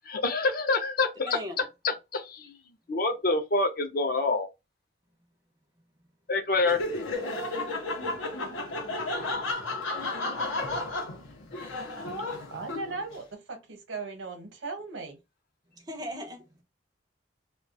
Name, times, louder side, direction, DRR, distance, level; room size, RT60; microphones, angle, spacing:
voice 1, 0.0-1.4 1.8-2.6 2.9-4.5 6.3-6.8, left 3 dB, 50° left, 0.5 m, -26 dB
voice 2, 1.2-1.7 11.4-12.3 15.7-16.6, equal, 20° right, 0.5 m, -41 dB
Laughter, 6.6-13.1, left 2 dB, 90° left, 0.8 m, -33 dB
voice 3, 12.5-15.2, right 4 dB, 80° right, 0.8 m, -38 dB
2.2 x 2.2 x 2.5 m
head